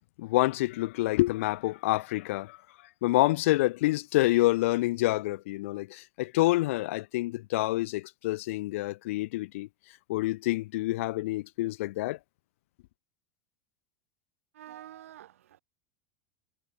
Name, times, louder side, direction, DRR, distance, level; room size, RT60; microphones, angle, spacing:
voice 1, 0.2-2.6 3.0-9.7 10.1-12.2, left 18 dB, 70° left, 0.7 m, -27 dB
voice 2, 14.5-15.6, right 12 dB, 80° right, 1.9 m, -48 dB
hypercardioid pair, 90°, 7 cm